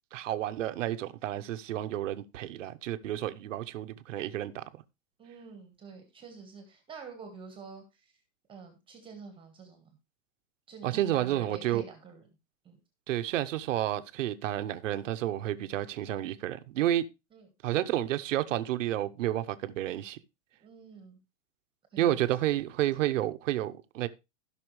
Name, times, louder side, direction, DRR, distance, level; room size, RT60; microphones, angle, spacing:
voice 1, 0.1-4.6 10.8-11.8 13.1-17.0 17.6-20.2 22.0-24.1, right 13 dB, 75° right, 1.0 m, -30 dB
voice 2, 5.2-8.2 8.5-10.0 10.7-12.3 12.6-12.8 17.3-17.5 20.6-21.2 21.9-22.3, right 5 dB, 15° right, 1.4 m, -47 dB
16.0 x 5.9 x 3.2 m
supercardioid pair, 165°, 38 cm